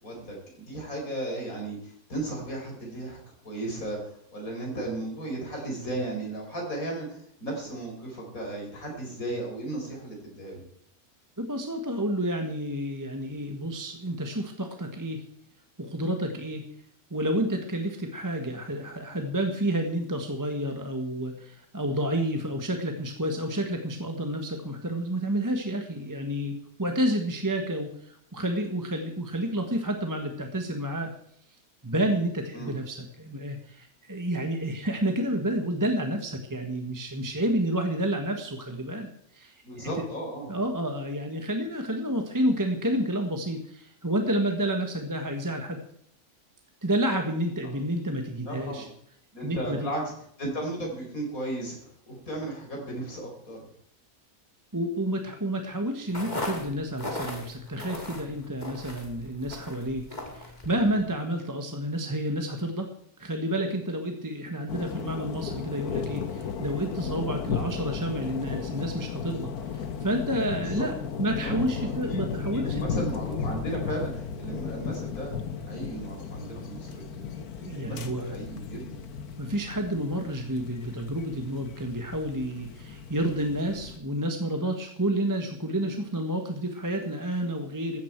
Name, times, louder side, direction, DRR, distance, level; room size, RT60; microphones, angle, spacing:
voice 1, 0.0-3.2 3.4-10.7 32.5-32.7 39.6-40.5 48.4-48.9 49.3-50.1 50.4-53.6 70.6-70.9 71.4-72.2 72.5-75.4 75.7-77.2 77.6-79.1, right 1 dB, 65° left, 0 dB, 5.3 m, -35 dB
voice 2, 11.4-15.2 15.8-16.6 17.1-31.1 31.8-39.9 40.5-45.8 46.8-48.9 49.4-49.9 54.7-60.0 60.3-62.9 63.2-73.1 77.6-78.4 79.4-88.0, right 1 dB, 15° right, 4 dB, 1.4 m, -30 dB
sound 1, 56.1-61.1, left 2 dB, 30° left, 2.8 m, -38 dB
sound 2, 64.7-84.0, left 6 dB, 90° left, 1.6 m, -35 dB
15.5 x 13.5 x 4.7 m, 0.68 s
omnidirectional pair, 1.6 m